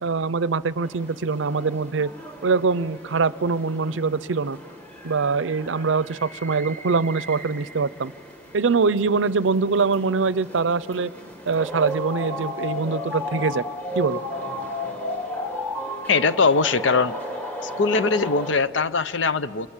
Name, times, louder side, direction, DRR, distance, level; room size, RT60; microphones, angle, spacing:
voice 1, 0.0-2.1 2.4-4.6 5.0-8.1 8.5-11.1 11.5-13.7 14.0-14.2, right 4 dB, 90° right, 18 dB, 0.6 m, -23 dB
sound 1, 0.8-18.5, left 1 dB, 10° left, 1.3 m, -35 dB
voice 2, 16.1-17.1 17.6-19.7, left 4 dB, 75° left, 14 dB, 0.6 m, -21 dB
30.0 x 26.5 x 7.4 m, 2.3 s
head